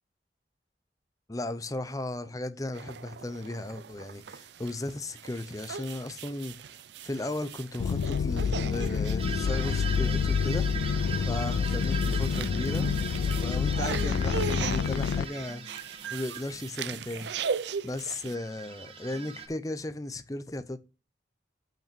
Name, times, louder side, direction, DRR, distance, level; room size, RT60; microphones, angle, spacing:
voice 1, 1.3-10.7 11.3-12.9 13.3-15.6 16.1-17.3 17.8-20.8, left 1 dB, 20° left, 0.7 m, -36 dB
sound 1, 2.7-18.3, right 6 dB, 75° right, 0.5 m, -39 dB
sound 2, 7.8-15.3, left 6 dB, 85° left, 0.3 m, -28 dB
sound 3, 9.2-17.0 18.1-19.5, right 5 dB, 30° right, 1.1 m, -40 dB
6.0 x 5.5 x 6.8 m
head